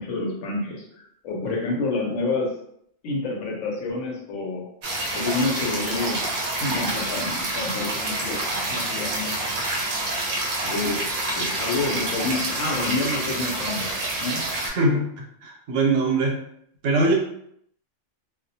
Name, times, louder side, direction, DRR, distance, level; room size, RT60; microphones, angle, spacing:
voice 1, 0.0-2.5 3.0-4.7 5.1-9.6 10.6-11.0 11.3-13.9 14.2-14.4, left 3 dB, 85° left, -1 dB, 1.0 m, -28 dB
sound 1, 4.8-14.7, right 2 dB, 55° right, 0.6 m, -28 dB
voice 2, 14.7-15.1 15.4-16.4 16.8-17.1, right 2 dB, 85° right, 0 dB, 1.0 m, -22 dB
2.3 x 2.1 x 2.7 m, 0.70 s
omnidirectional pair, 1.3 m